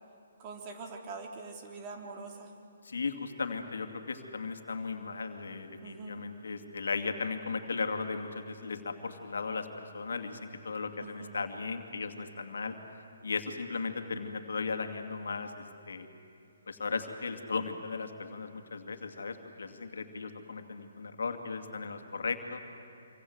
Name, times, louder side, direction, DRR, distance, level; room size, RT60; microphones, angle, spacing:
voice 1, 0.4-2.5 5.8-6.2 11.0-11.4, right 4 dB, 30° right, 2 dB, 3.5 m, -44 dB
voice 2, 2.8-12.8 13.2-16.1 16.7-22.6, left 4 dB, 75° left, 6 dB, 2.5 m, -36 dB
26.5 x 26.0 x 8.1 m, 2.7 s
hypercardioid pair, 140°, 0 cm